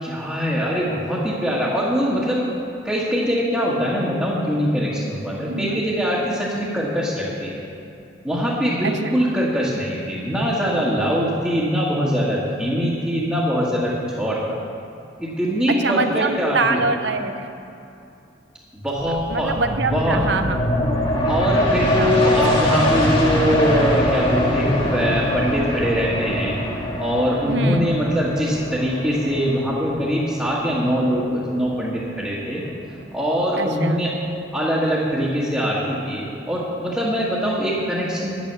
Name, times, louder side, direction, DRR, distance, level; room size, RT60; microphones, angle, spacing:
voice 1, 0.0-2.4 2.8-7.6 8.2-14.6 15.2-16.8 18.7-19.6 19.9-20.2 21.3-26.6 27.0-32.6 33.1-34.1 34.5-38.3, equal, 5° right, -9 dB, 1.7 m, -22 dB
voice 2, 5.5-5.8 8.8-9.1 15.7-17.7 19.3-20.6 22.0-22.4 27.5-27.9 33.6-34.0, right 3 dB, 65° right, 7 dB, 0.8 m, -25 dB
sound 1, 19.0-32.3 32.7-32.8, equal, 25° left, 1.8 m, -23 dB
10.5 x 10.5 x 6.9 m, 2.7 s
head